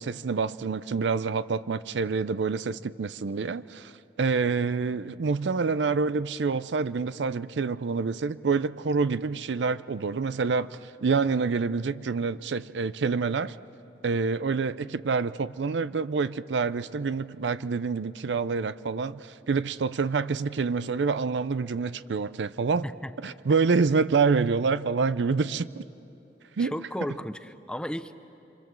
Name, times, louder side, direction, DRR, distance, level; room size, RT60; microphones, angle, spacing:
voice 1, 0.0-13.6 14.0-22.9 23.2-25.8 26.6-26.7, right 4 dB, 80° right, 0.5 m, -27 dB
voice 2, 22.8-23.4 26.6-28.1, equal, 5° left, 0.6 m, -35 dB
27.5 x 25.0 x 7.5 m
head